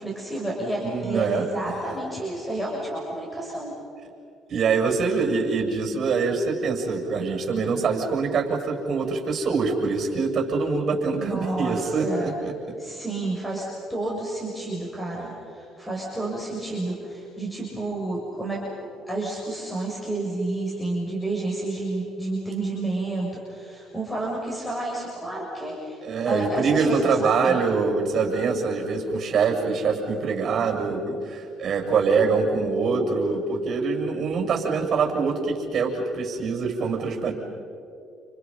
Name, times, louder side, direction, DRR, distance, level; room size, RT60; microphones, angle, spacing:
voice 1, 0.0-3.7 11.1-12.3 12.8-27.6, right 2 dB, 5° left, -3 dB, 7.5 m, -30 dB
voice 2, 0.8-1.7 4.5-12.5 26.0-37.3, right 4 dB, 50° right, 2 dB, 7.2 m, -24 dB
30.0 x 29.5 x 5.8 m, 2.6 s
supercardioid pair, 65°, 0 cm